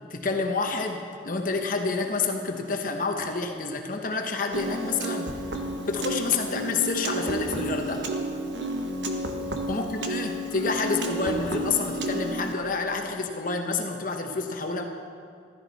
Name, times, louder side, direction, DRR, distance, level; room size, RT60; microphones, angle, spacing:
voice 1, 0.1-8.1 9.7-14.8, left 4 dB, 50° left, 4 dB, 1.0 m, -29 dB
Piano, 4.5-12.5, right 1 dB, 85° right, 1.1 m, -31 dB
14.5 x 13.0 x 4.1 m, 2.2 s
head